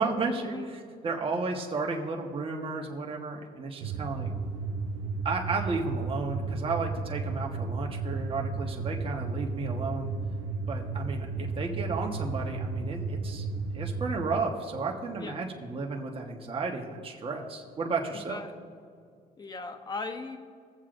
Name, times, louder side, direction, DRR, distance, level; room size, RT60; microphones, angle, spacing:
voice 1, 0.0-4.3 5.2-10.1 10.7-13.5 13.7-18.4, right 4 dB, 35° right, 1 dB, 1.3 m, -33 dB
sound 1, 3.8-14.3, right 3 dB, 85° right, 0.9 m, -33 dB
voice 2, 18.1-18.5 19.4-20.4, left 3 dB, 25° left, 7 dB, 0.9 m, -38 dB
20.0 x 7.4 x 2.6 m, 2.2 s
cardioid pair, 110°, 17 cm